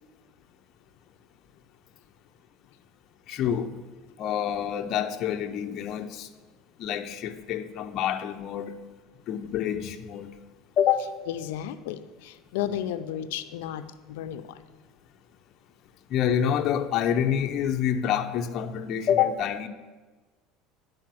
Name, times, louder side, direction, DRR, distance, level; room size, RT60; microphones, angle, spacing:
voice 1, 3.3-3.7 4.2-6.3 6.8-8.8 9.3-10.3 10.8-11.2 16.1-19.7, left 9 dB, 45° left, 5 dB, 0.7 m, -27 dB
voice 2, 11.3-14.6, left 11 dB, 85° left, 10 dB, 0.5 m, -33 dB
10.5 x 4.9 x 7.5 m, 1.3 s
supercardioid pair, 135°, 0 cm